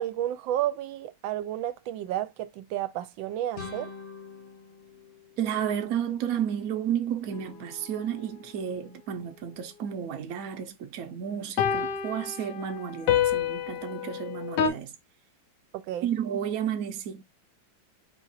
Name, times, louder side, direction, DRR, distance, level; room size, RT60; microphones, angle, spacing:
voice 1, 0.0-3.9 15.7-16.1, right 12 dB, 80° right, 1.3 m, -31 dB
sound 1, 3.5-6.3, left 4 dB, 40° left, 0.7 m, -44 dB
voice 2, 5.4-15.0 16.0-17.2, right 9 dB, 60° right, 0.9 m, -32 dB
sound 2, 7.3-7.4 11.6-14.7, left 8 dB, 70° left, 1.3 m, -28 dB
4.4 x 2.5 x 4.0 m
omnidirectional pair, 2.1 m